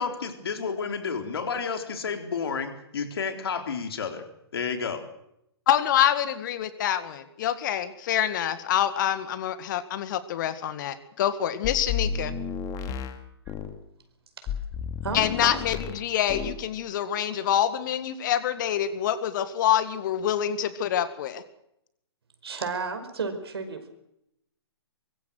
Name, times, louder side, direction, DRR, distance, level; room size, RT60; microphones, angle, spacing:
voice 1, 0.0-4.2 4.5-5.0, left 5 dB, 65° left, 7 dB, 3.7 m, -31 dB
voice 2, 5.7-12.3 15.1-21.4, left 10 dB, 45° left, 13 dB, 2.0 m, -26 dB
sound 1, 11.6-13.8 14.5-16.0 16.3-16.6, left 7 dB, 25° left, 2.4 m, -32 dB
voice 3, 15.0-15.6 22.4-23.9, right 4 dB, 65° right, 8 dB, 5.1 m, -32 dB
24.0 x 22.5 x 6.4 m, 0.79 s
figure-of-eight pair, 125°, 14 cm